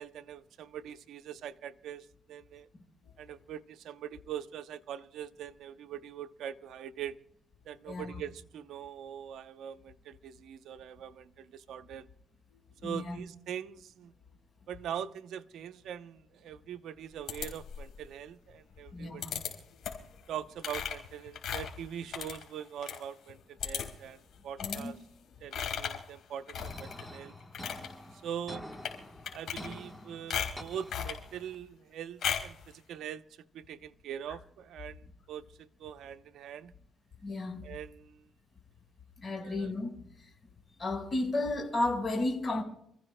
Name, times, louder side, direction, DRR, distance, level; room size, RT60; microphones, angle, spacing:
voice 1, 0.0-2.7 3.2-7.2 7.7-12.1 12.8-14.1 14.7-19.2 20.3-25.0 25.4-27.3 28.2-28.7 29.3-33.2 33.5-36.7 37.6-38.3 39.4-39.7, right 9 dB, 75° right, 0.7 m, -42 dB
voice 2, 12.8-13.2 18.9-19.3 24.6-24.9 37.2-37.6 39.2-40.0 40.8-42.6, left 2 dB, 35° left, 4.9 m, -33 dB
sound 1, 17.3-18.0 19.2-19.5 19.8-20.1 20.6-23.0 23.3-23.4 23.6-24.1 24.6-24.8 25.5-26.0 26.5-27.0 27.4-27.9 28.7-29.0 29.2-30.0 30.3-31.2 32.2-32.6, left 8 dB, 70° left, 4.8 m, -36 dB
sound 2, 26.6-31.6, left 1 dB, 5° left, 1.2 m, -47 dB
29.0 x 15.0 x 2.2 m
cardioid pair, 90°, 0 cm